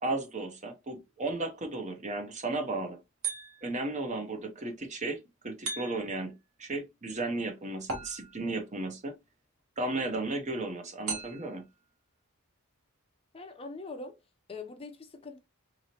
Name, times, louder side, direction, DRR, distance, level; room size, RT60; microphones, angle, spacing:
voice 1, 0.0-3.0 3.6-9.2 9.8-11.6, right 2 dB, 35° right, 0.7 m, -34 dB
sound 1, 3.2-3.9 5.7-6.3 7.9-8.6 11.1-11.7, right 4 dB, 75° right, 1.4 m, -38 dB
voice 2, 13.3-14.2 14.5-15.4, left 3 dB, 25° left, 0.6 m, -42 dB
3.9 x 3.0 x 2.8 m
head